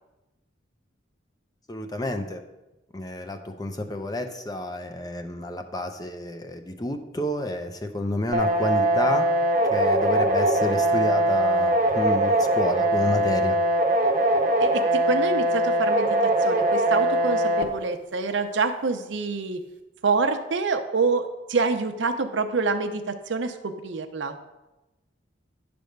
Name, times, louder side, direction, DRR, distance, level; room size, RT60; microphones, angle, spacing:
voice 1, 1.7-2.4 2.9-9.3 9.7-13.6, left 1 dB, 20° left, 6 dB, 0.6 m, -30 dB
sound 1, 8.3-17.6, right 1 dB, 45° right, 0.8 m, -22 dB
voice 2, 14.6-19.6 20.0-24.4, right 4 dB, 80° right, 7 dB, 0.7 m, -26 dB
10.0 x 3.5 x 6.5 m, 1.0 s
head